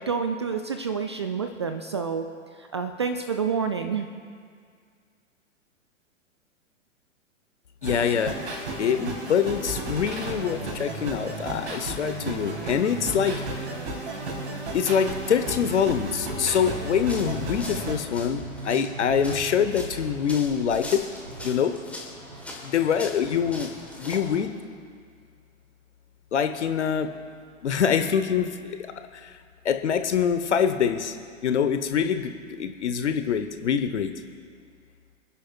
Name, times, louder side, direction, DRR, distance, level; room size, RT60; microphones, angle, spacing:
voice 1, 0.0-2.3 2.6-4.1, right 6 dB, 25° right, 7 dB, 0.3 m, -28 dB
voice 2, 7.8-8.4 8.8-13.6 14.7-21.0 21.4-21.8 22.6-23.7 24.0-24.5 26.3-27.1 27.6-28.8 29.1-29.4 29.6-31.2 31.4-32.3 32.6-34.1, left 7 dB, 60° left, 9 dB, 1.1 m, -25 dB
sound 1, 7.8-18.0, right 2 dB, 55° right, 4.1 m, -34 dB
sound 2, 12.5-24.4, right 2 dB, 80° right, 1.4 m, -40 dB
sound 3, 17.1-24.4, left 2 dB, 5° left, 1.4 m, -41 dB
28.0 x 10.0 x 2.4 m, 2.1 s
figure-of-eight pair, 110°, 40 cm